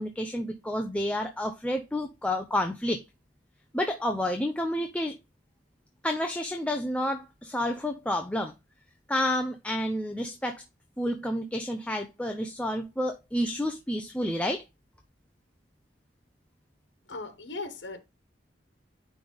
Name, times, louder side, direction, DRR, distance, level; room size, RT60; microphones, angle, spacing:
voice 1, 0.0-3.0 3.7-5.2 6.0-8.5 9.1-10.6 11.0-14.6, left 1 dB, 5° left, 0.6 m, -30 dB
voice 2, 17.1-18.0, left 3 dB, 80° left, 1.2 m, -38 dB
9.9 x 3.4 x 3.9 m
head